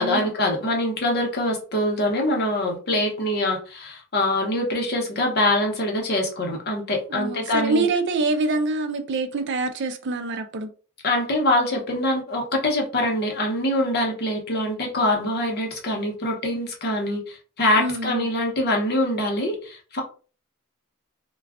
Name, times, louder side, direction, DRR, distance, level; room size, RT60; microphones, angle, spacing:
voice 1, 0.0-7.9 11.0-20.0, left 1 dB, 50° left, 0.9 m, -24 dB
voice 2, 7.1-10.7 17.8-18.2, right 3 dB, 55° right, 0.4 m, -25 dB
2.3 x 2.3 x 3.4 m
head